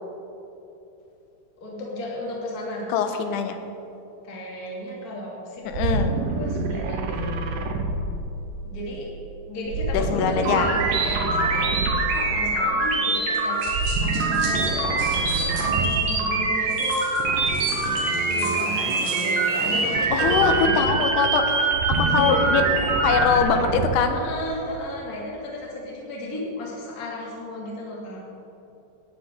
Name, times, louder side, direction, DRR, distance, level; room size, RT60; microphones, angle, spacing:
voice 1, 1.6-2.9 4.2-7.3 8.6-9.1 9.5-17.0 18.3-20.9 22.0-22.7 24.1-28.2, left 1 dB, 25° left, -4 dB, 2.3 m, -34 dB
voice 2, 2.9-3.6 5.7-6.1 9.9-10.7 20.1-22.6 23.0-24.2, left 6 dB, 75° left, 6 dB, 2.8 m, -23 dB
sound 1, 5.7-8.7 9.6-12.3 13.6-16.2 17.2-21.2 21.6-24.1, right 3 dB, 80° right, 2.0 m, -29 dB
sound 2, 10.4-23.4, right 3 dB, 65° right, 3.4 m, -24 dB
sound 3, 13.3-16.1 16.7-19.4, right 3 dB, 45° right, 3.8 m, -39 dB
18.0 x 12.5 x 3.8 m, 2.9 s
omnidirectional pair, 5.0 m